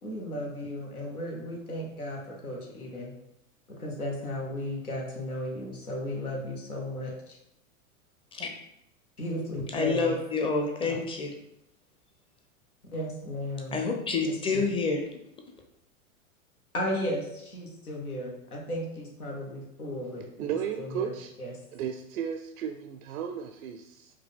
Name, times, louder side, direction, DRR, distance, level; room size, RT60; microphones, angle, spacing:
voice 1, 0.0-3.1 3.7-7.4 9.2-10.1 10.8-10.9 12.9-13.9 14.2-14.6 16.7-21.5, left 1 dB, 90° left, 1.5 m, -35 dB
voice 2, 9.7-11.3 13.7-15.0, left 4 dB, 15° left, 0.6 m, -28 dB
voice 3, 20.4-21.3 21.7-24.1, right 8 dB, 75° right, 0.5 m, -34 dB
4.9 x 2.8 x 3.6 m
hypercardioid pair, 105°, 43 cm